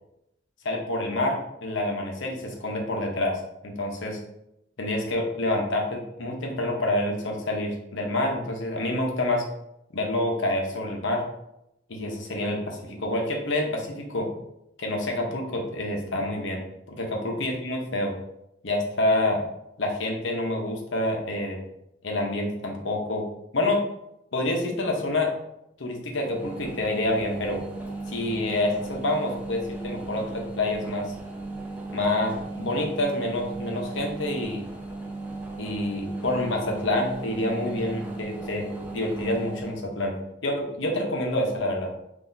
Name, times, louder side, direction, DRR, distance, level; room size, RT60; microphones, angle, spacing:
voice 1, 0.6-4.2 4.8-9.4 9.9-11.2 11.9-14.3 14.8-16.6 16.9-18.1 18.6-19.4 19.8-21.6 22.0-23.2 23.5-23.8 24.3-25.3 25.8-27.6 28.1-31.1 31.9-34.6 35.6-38.7 38.9-41.9, left 1 dB, 70° left, 1 dB, 0.9 m, -27 dB
sound 1, 26.2-39.8, right 2 dB, 10° right, 0.6 m, -36 dB
5.8 x 2.7 x 2.7 m, 0.84 s
head